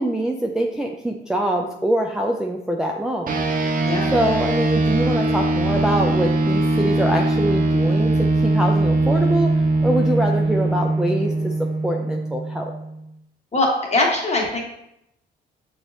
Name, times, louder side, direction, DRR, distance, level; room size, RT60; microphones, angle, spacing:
voice 1, 0.0-3.4 4.1-9.5 9.8-11.5 11.8-12.7, right 1 dB, 5° right, 0 dB, 0.4 m, -24 dB
sound 1, 3.3-13.0, right 2 dB, 45° right, 0.6 m, -21 dB
voice 2, 13.5-14.6, left 2 dB, 35° left, -1 dB, 1.3 m, -21 dB
6.4 x 3.0 x 2.7 m, 0.79 s
cardioid pair, 90°, 20 cm